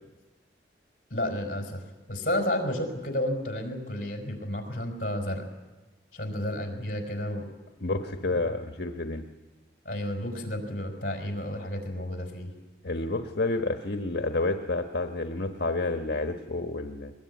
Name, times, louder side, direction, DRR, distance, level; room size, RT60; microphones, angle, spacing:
voice 1, 1.1-1.8 2.1-5.4 6.1-7.5 7.9-8.0 9.8-12.5, left 1 dB, 50° left, 3 dB, 5.0 m, -31 dB
voice 2, 7.8-9.2 12.8-17.1, left 2 dB, 70° left, 5 dB, 1.2 m, -29 dB
21.5 x 21.5 x 9.5 m, 1.2 s
head